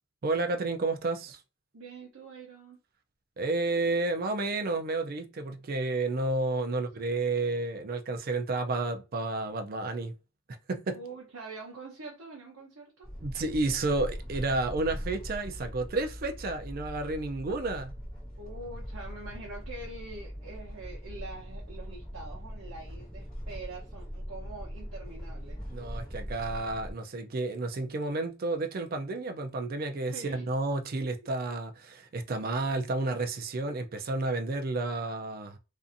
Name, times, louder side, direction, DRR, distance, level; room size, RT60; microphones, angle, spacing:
voice 1, 0.2-1.4 3.4-10.1 10.7-11.0 13.2-18.0 25.7-35.6, right 2 dB, 40° right, 0.4 m, -31 dB
voice 2, 1.7-2.8 6.7-6.8 10.9-13.1 18.4-25.6 30.1-30.5, right 3 dB, 70° right, 0.8 m, -44 dB
sound 1, 13.0-26.9, equal, 5° left, 1.3 m, -41 dB
2.6 x 2.5 x 2.5 m
head